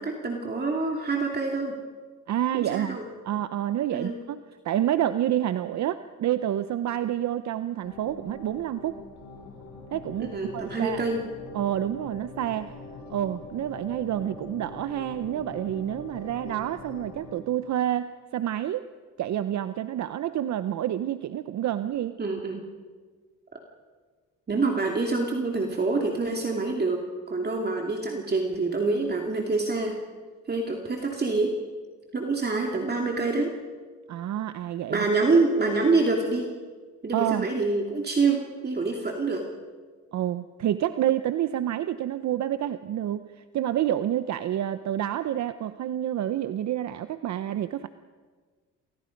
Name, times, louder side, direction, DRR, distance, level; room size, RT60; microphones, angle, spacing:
voice 1, 0.0-1.8 2.5-3.1 3.9-4.2 10.2-11.2 22.2-22.6 24.5-27.0 27.3-29.9 30.5-31.5 32.1-33.5 34.9-36.5 37.0-39.4, right 3 dB, 35° right, 1 dB, 2.7 m, -26 dB
voice 2, 2.3-3.0 3.2-9.0 9.9-11.0 11.5-12.7 13.1-18.9 19.2-22.2 34.1-35.1 37.1-37.5 40.1-43.2 43.5-47.9, right 11 dB, 65° right, 12 dB, 0.8 m, -28 dB
sound 1, 7.8-17.3, left 3 dB, 80° left, 5.8 m, -43 dB
28.5 x 23.5 x 5.3 m, 1.5 s
cardioid pair, 90°, 30 cm